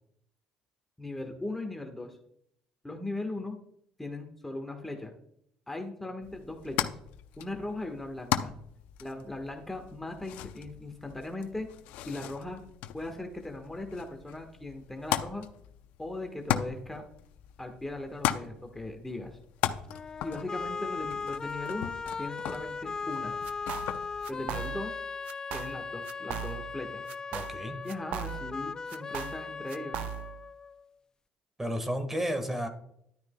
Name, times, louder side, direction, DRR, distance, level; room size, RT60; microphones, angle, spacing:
voice 1, 1.0-2.2 2.8-3.6 4.0-5.1 5.7-6.9 7.4-8.5 9.0-11.7 12.1-12.6 12.9-15.5 16.0-17.1 17.6-19.4 20.2-23.4 24.3-25.0 25.5-27.0 27.8-30.0, left 2 dB, 10° left, 4 dB, 1.4 m, -38 dB
sound 1, 6.2-24.6, left 12 dB, 75° left, 0.6 m, -38 dB
sound 2, 19.9-30.9, left 5 dB, 25° left, 0.3 m, -38 dB
sound 3, 23.4-24.0 24.2-25.0 25.3-25.8 26.0-26.8 27.1-28.6 28.9-30.4, right 10 dB, 70° right, 0.6 m, -38 dB
voice 2, 27.3-27.8 31.6-32.7, equal, 10° right, 7 dB, 1.6 m, -32 dB
11.5 x 9.4 x 2.2 m, 0.71 s
supercardioid pair, 80°, 3 cm